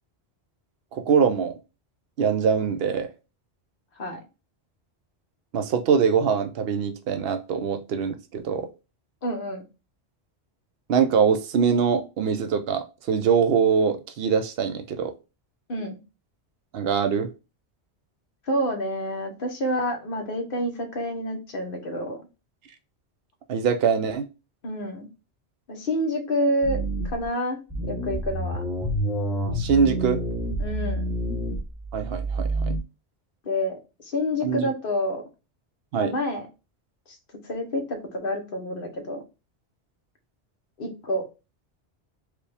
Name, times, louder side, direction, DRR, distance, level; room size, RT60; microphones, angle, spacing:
voice 1, 0.9-1.5 2.2-3.1 5.5-8.7 10.9-15.1 16.7-17.3 23.5-24.3 29.5-30.2 31.9-32.7 34.4-34.7 35.9-36.1, right 6 dB, 65° right, 8 dB, 0.8 m, -23 dB
voice 2, 9.2-9.6 15.7-16.0 18.5-22.2 24.6-25.1 25.7-26.8 27.0-28.6 30.6-31.2 33.4-35.2 36.0-36.4 37.4-39.2 40.8-41.3, equal, 55° left, 3 dB, 1.1 m, -28 dB
sound 1, 26.6-27.3 27.7-32.8, right 1 dB, ahead, 1.0 m, -28 dB
4.8 x 2.3 x 3.3 m, 0.29 s
omnidirectional pair, 1.1 m